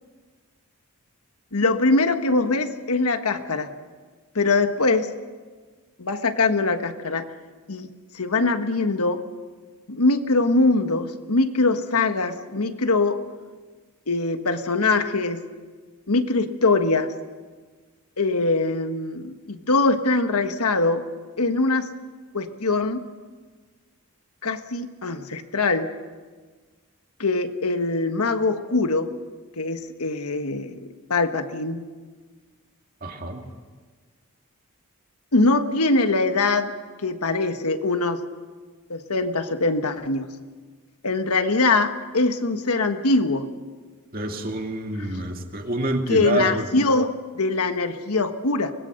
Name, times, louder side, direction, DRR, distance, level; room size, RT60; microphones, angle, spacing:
voice 1, 1.5-3.7 4.3-5.1 6.0-7.3 7.7-7.9 8.1-9.2 9.9-13.2 14.1-15.4 16.1-17.1 18.2-21.0 21.4-21.9 22.3-23.0 24.4-25.9 27.2-29.1 29.6-30.8 31.1-31.8 35.3-36.7 37.0-38.2 38.9-40.3 41.0-43.5 45.0-45.2 46.1-48.7, left 3 dB, 85° left, 8 dB, 1.5 m, -22 dB
voice 2, 33.0-33.4 44.1-46.7, right 1 dB, 40° right, 3 dB, 2.2 m, -27 dB
24.5 x 20.5 x 6.6 m, 1.4 s
head